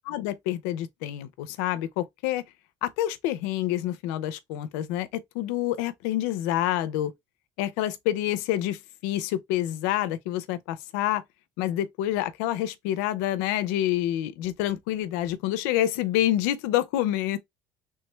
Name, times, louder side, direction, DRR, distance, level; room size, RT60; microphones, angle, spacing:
voice 1, 0.1-2.4 2.8-7.1 7.6-11.2 11.6-17.4, left 13 dB, 90° left, 0.4 m, -27 dB
3.3 x 2.1 x 3.1 m
supercardioid pair, 90°, 9 cm